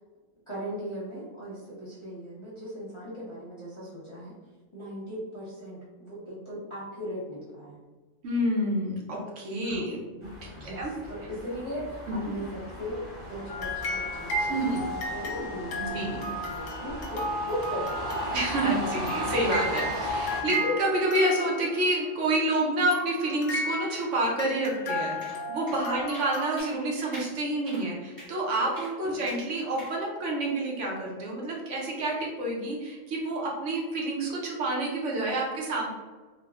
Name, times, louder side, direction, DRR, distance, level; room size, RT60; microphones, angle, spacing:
voice 1, 0.5-4.3 4.7-7.8 9.6-9.9 10.6-18.3 20.5-20.6 25.9-26.1 29.1-29.2, equal, 30° left, -10 dB, 0.6 m, -38 dB
voice 2, 8.2-10.5 10.8-10.9 12.1-12.2 14.4-14.8 15.7-16.3 18.3-35.9, right 1 dB, 75° right, -3 dB, 1.0 m, -28 dB
sound 1, 10.2-20.4, left 1 dB, 45° right, 0.3 m, -37 dB
sound 2, 13.5-22.0 22.9-26.6, equal, 70° left, 0.9 m, -34 dB
sound 3, 25.2-25.4 25.7-25.8 26.1-26.3 26.6-26.8 27.1-27.3 27.7-27.8 28.2-28.3 28.8-28.9 29.3-29.4 29.8-29.9, equal, 20° right, 0.9 m, -44 dB
3.5 x 2.0 x 2.3 m, 1.3 s
omnidirectional pair, 1.3 m